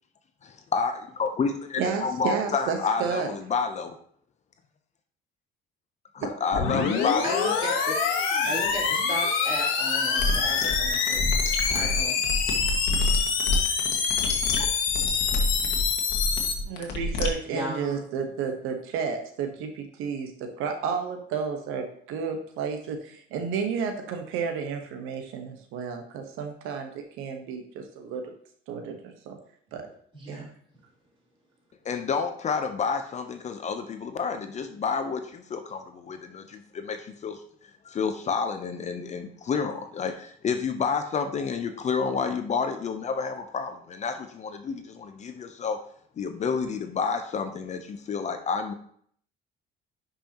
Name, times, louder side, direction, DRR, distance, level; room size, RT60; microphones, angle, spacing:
voice 1, 0.4-4.0 6.1-7.4 31.8-37.4 37.8-45.8 46.2-48.7, left 5 dB, 35° left, 7 dB, 0.6 m, -29 dB
voice 2, 1.8-3.3 16.7-26.9 27.2-28.2 28.7-29.4 29.7-29.9 30.3-30.5, right 6 dB, 80° right, 4 dB, 1.2 m, -31 dB
sound 1, 6.5-16.5, left 6 dB, 80° left, 1.4 m, -26 dB
voice 3, 7.2-8.1 8.4-11.3 11.7-12.2 17.5-18.0 30.1-30.5, equal, 25° right, -4 dB, 3.6 m, -35 dB
sound 2, 10.2-17.3, left 2 dB, 60° left, 1.7 m, -28 dB
10.0 x 5.5 x 2.9 m, 0.62 s
cardioid pair, 125°, 21 cm